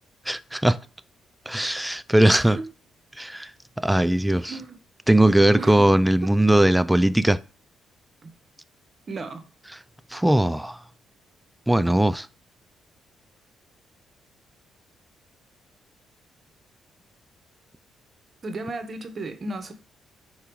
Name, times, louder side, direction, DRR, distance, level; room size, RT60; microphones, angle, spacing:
voice 1, 0.3-0.8 1.5-2.6 3.2-3.5 3.8-4.6 5.1-7.4 10.1-10.8 11.7-12.3, right 1 dB, 5° right, 0.3 m, -19 dB
voice 2, 2.3-2.7 4.5-4.8 5.5-5.9 8.2-8.3 9.1-9.5 18.4-19.7, right 3 dB, 40° right, 0.8 m, -34 dB
5.1 x 2.3 x 4.5 m
cardioid pair, 90°, 0 cm